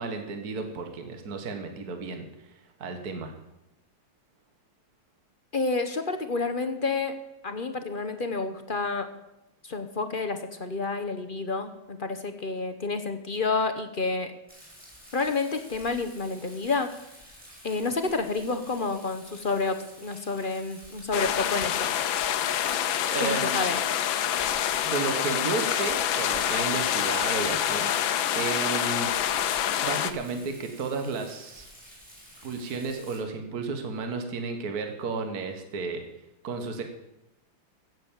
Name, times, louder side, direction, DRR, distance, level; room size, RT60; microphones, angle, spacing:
voice 1, 0.0-3.3 23.1-23.5 24.8-29.1 29.8-31.7 32.4-36.0 36.4-36.8, right 4 dB, 50° right, 5 dB, 1.9 m, -33 dB
voice 2, 5.5-7.1 7.4-9.1 9.6-14.3 15.1-16.9 17.6-21.9 23.2-23.8, left 3 dB, 40° left, 8 dB, 0.7 m, -29 dB
Rain, 14.5-33.2, equal, 5° right, 6.3 m, -50 dB
sound 1, 21.1-30.1, left 10 dB, 75° left, 1.5 m, -27 dB
15.5 x 8.0 x 7.5 m, 0.89 s
omnidirectional pair, 2.2 m